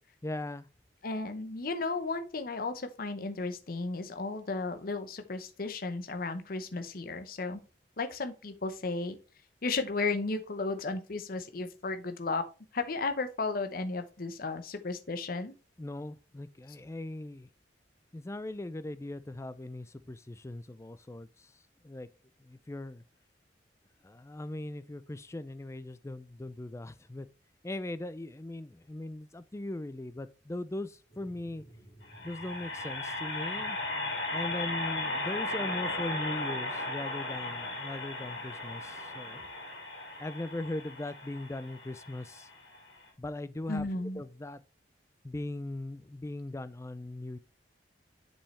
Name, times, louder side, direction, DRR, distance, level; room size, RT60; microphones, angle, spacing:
voice 1, 0.2-0.7 15.8-17.5 18.1-21.3 21.8-22.1 22.5-23.0 24.0-27.3 27.6-31.6 32.2-33.8 34.3-39.4 40.2-42.5 43.2-43.9 44.2-44.6 45.2-47.4, left 1 dB, 15° left, 0.4 m, -39 dB
voice 2, 1.0-7.6 8.0-9.2 9.6-12.5 12.7-15.5 43.7-44.2, left 3 dB, 55° left, 0.8 m, -34 dB
sound 1, 31.1-43.0, left 2 dB, 70° left, 3.2 m, -37 dB
7.1 x 5.5 x 3.2 m
head